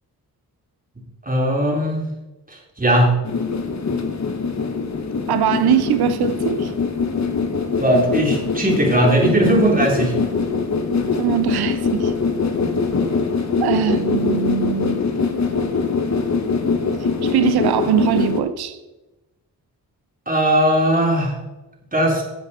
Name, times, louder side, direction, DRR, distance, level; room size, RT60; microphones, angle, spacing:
voice 1, 1.2-2.0 2.8-3.1 7.8-10.1 20.3-21.4 21.9-22.2, right 1 dB, 20° right, 3.3 m, -18 dB
sound 1, 3.2-18.4, left 4 dB, 45° left, 1.4 m, -22 dB
voice 2, 5.3-6.7 11.2-12.1 13.6-15.0 17.2-18.8, right 11 dB, 85° right, 0.6 m, -21 dB
11.5 x 7.4 x 4.2 m
cardioid pair, 65°, 38 cm